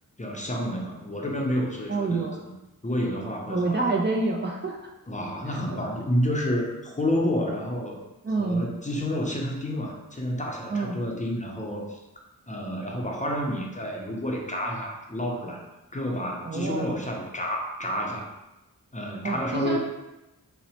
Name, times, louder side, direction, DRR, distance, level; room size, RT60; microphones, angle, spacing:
voice 1, 0.2-2.3 2.8-3.8 5.1-8.0 8.4-12.0 12.5-15.6 15.9-18.3 18.9-19.8, equal, 20° left, -1 dB, 0.5 m, -29 dB
voice 2, 1.9-2.4 3.5-4.8 5.7-5.8 8.2-8.6 10.7-11.0 16.5-17.0 19.2-19.8, right 3 dB, 30° right, -2 dB, 0.4 m, -27 dB
4.1 x 2.1 x 2.8 m, 0.98 s
wide cardioid pair, 70°, 34 cm